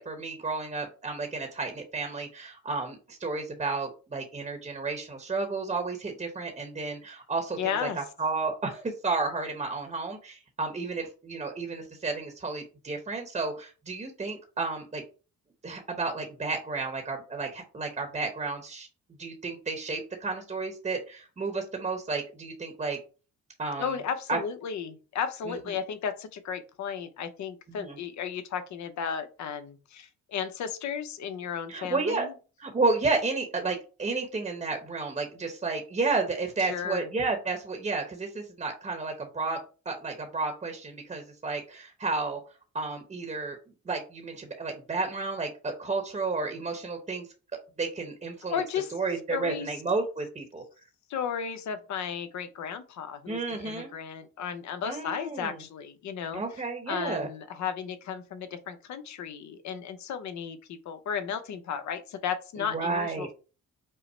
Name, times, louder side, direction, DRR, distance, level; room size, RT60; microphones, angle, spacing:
voice 1, 0.0-15.0 15.6-18.9 19.2-23.0 23.6-24.0 24.3-24.4 25.5-25.6 27.7-28.0 31.7-32.3 32.6-39.6 39.8-42.4 42.7-43.6 43.8-47.2 47.8-48.6 48.9-50.6 53.3-53.9 54.8-55.6 56.3-57.3 62.6-63.3, right 3 dB, 25° right, 4 dB, 0.9 m, -32 dB
voice 2, 7.6-8.0 23.8-32.3 36.6-37.1 48.5-48.9 49.3-49.7 51.1-56.4 56.9-63.3, left 7 dB, 70° left, 10 dB, 0.8 m, -34 dB
5.4 x 2.0 x 4.3 m, 0.35 s
cardioid pair, 90°, 30 cm